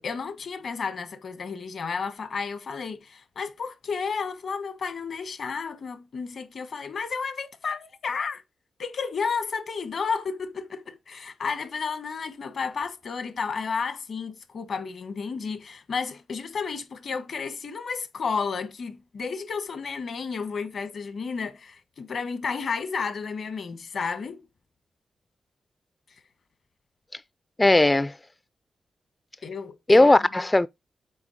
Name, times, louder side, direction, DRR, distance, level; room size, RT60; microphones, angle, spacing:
voice 1, 0.0-8.4 8.8-24.4 29.4-30.2, left 5 dB, 70° left, 1.5 m, -32 dB
voice 2, 27.6-28.2 29.9-30.7, left 2 dB, 25° left, 0.3 m, -18 dB
8.7 x 4.2 x 5.0 m
supercardioid pair, 45°, 0 cm